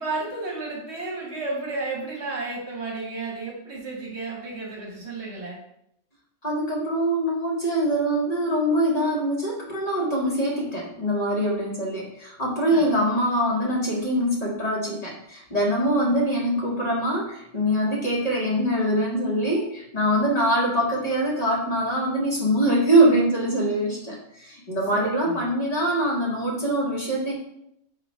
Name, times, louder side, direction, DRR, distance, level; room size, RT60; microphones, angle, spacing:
voice 1, 0.0-5.6 12.7-12.9 16.0-16.1 24.9-25.5, right 3 dB, 65° right, -3 dB, 1.2 m, -32 dB
voice 2, 6.4-27.3, right 1 dB, 35° left, -4 dB, 1.0 m, -23 dB
4.2 x 2.2 x 4.1 m, 0.76 s
omnidirectional pair, 1.3 m